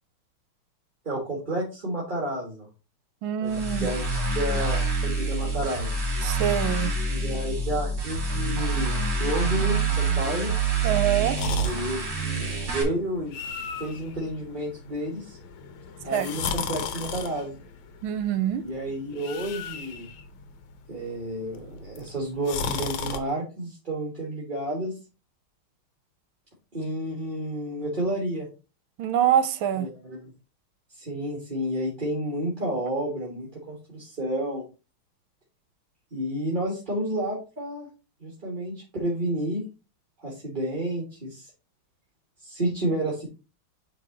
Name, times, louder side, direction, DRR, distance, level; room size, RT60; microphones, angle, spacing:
voice 1, 1.0-2.7 3.4-4.0 4.4-5.9 7.1-10.5 11.6-12.1 12.4-15.4 16.0-17.6 18.6-20.1 20.9-24.9 26.7-28.5 29.7-30.3 30.9-34.6 36.1-37.9 38.2-39.6 40.2-41.5 42.4-43.3, right 1 dB, 25° right, 1.7 m, -30 dB
voice 2, 3.2-3.9 6.2-6.9 10.8-11.4 16.1-16.3 18.0-18.7 29.0-29.9, right 10 dB, 80° right, 1.5 m, -25 dB
sound 1, 3.5-12.8, right 3 dB, 40° right, 2.6 m, -27 dB
sound 2, 11.4-23.2, left 6 dB, 80° left, 1.6 m, -36 dB
8.9 x 3.6 x 3.8 m
omnidirectional pair, 2.3 m